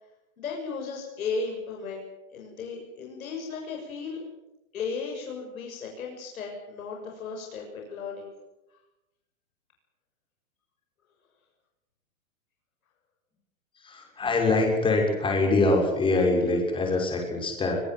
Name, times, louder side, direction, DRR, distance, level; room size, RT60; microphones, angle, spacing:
voice 1, 0.4-2.0 2.3-4.2 4.7-8.3, left 4 dB, 85° left, 0 dB, 6.9 m, -35 dB
voice 2, 13.8-17.8, left 2 dB, 10° left, 1 dB, 6.2 m, -24 dB
24.5 x 19.5 x 7.9 m, 0.96 s
hypercardioid pair, 150°, 41 cm